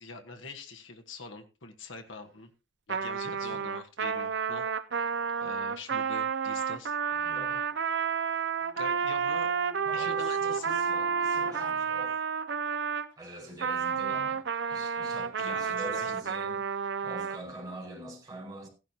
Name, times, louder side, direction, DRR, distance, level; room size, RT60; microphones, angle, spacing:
voice 1, 0.0-2.5 2.9-4.7 5.4-6.9 8.8-9.5 9.9-10.8 15.4-16.1, left 4 dB, 75° left, 1.5 m, -43 dB
Trumpet, 2.9-13.1 13.6-17.4, right 6 dB, 65° right, 0.7 m, -30 dB
voice 2, 7.2-7.6 9.8-12.2 13.2-14.4 14.7-16.6 17.0-18.7, right 1 dB, 20° right, 5.9 m, -44 dB
sound 1, 8.5-12.9, left 3 dB, 10° left, 1.2 m, -50 dB
15.5 x 11.5 x 2.9 m
head